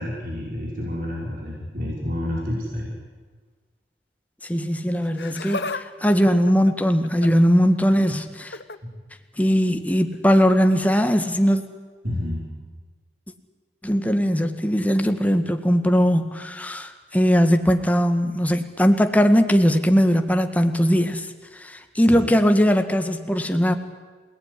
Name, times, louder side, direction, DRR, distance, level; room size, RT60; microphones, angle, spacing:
voice 1, 0.0-2.9 8.8-8.9 12.0-12.5 22.0-22.3, left 1 dB, 50° right, -3 dB, 5.8 m, -29 dB
voice 2, 4.5-8.6 9.4-11.6 13.8-21.3 21.6-23.7, equal, 10° left, 7 dB, 1.7 m, -20 dB
Laughter, 5.0-5.8 6.1-7.5 8.4-8.8 10.1-10.3 11.2-11.3, left 3 dB, 70° left, 1.2 m, -33 dB
28.0 x 19.0 x 10.0 m, 1.4 s
head